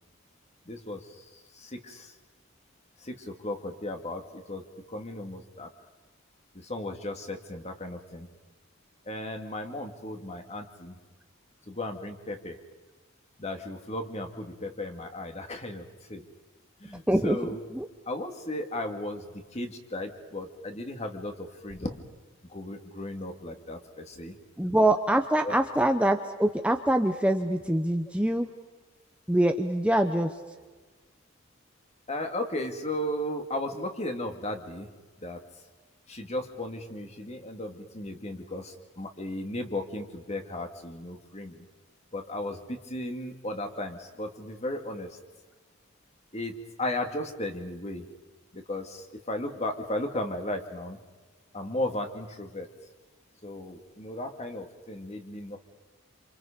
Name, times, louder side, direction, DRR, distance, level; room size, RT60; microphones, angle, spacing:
voice 1, 0.6-2.1 3.0-5.7 6.5-8.3 9.1-11.0 11.7-12.6 13.4-16.3 16.8-17.6 18.1-22.0 22.5-24.4 25.4-25.5 32.1-34.9 35.2-35.4 36.1-41.7 42.1-45.2 46.3-48.0 48.5-51.0 51.5-52.7 53.4-55.6, left 1 dB, 30° left, 4 dB, 2.4 m, -35 dB
voice 2, 17.1-17.9 24.6-28.5 29.3-30.3, right 1 dB, 5° right, 5 dB, 0.9 m, -24 dB
28.0 x 27.5 x 5.2 m, 1.3 s
head